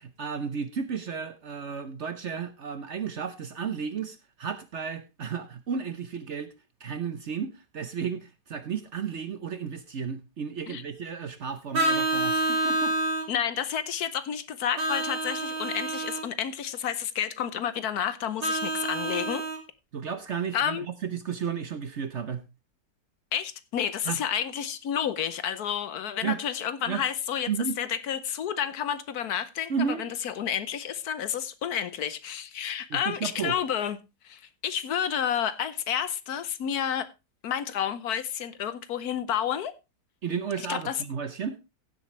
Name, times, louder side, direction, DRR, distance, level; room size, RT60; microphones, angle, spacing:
voice 1, 0.0-6.5 6.8-13.0 19.9-22.4 24.0-24.2 26.2-26.4 26.9-27.0 27.5-27.8 29.7-30.1 32.9-33.6 40.2-41.6, right 6 dB, 50° right, 0.9 m, -33 dB
Vehicle horn car horn honking, 11.7-13.3 14.8-16.3 18.4-19.6, right 1 dB, 75° right, 2.8 m, -27 dB
voice 2, 13.3-19.4 20.5-20.9 23.3-27.5 27.8-29.7 30.0-34.0 34.2-37.1 37.4-39.7 40.6-41.0, left 9 dB, 70° left, 1.2 m, -30 dB
16.0 x 7.7 x 3.1 m
omnidirectional pair, 1.8 m